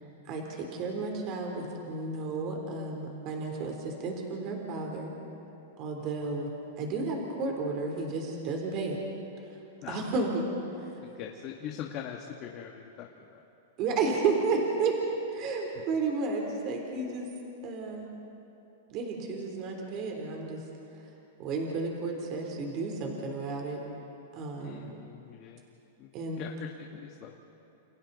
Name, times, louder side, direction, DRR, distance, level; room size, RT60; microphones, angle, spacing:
voice 1, 0.2-5.1 5.8-6.5 6.8-9.0 9.5-9.6 9.9-10.5 10.8-10.9 13.8-17.3 17.6-18.1 18.9-20.6 21.4-23.8 24.3-25.0 26.1-26.5, right 4 dB, 40° right, 1 dB, 3.4 m, -32 dB
voice 2, 11.0-13.4 24.6-25.6 26.0-27.4, left 9 dB, 40° left, 1 dB, 1.4 m, -42 dB
29.5 x 29.0 x 4.1 m, 2.9 s
supercardioid pair, 145°, 0 cm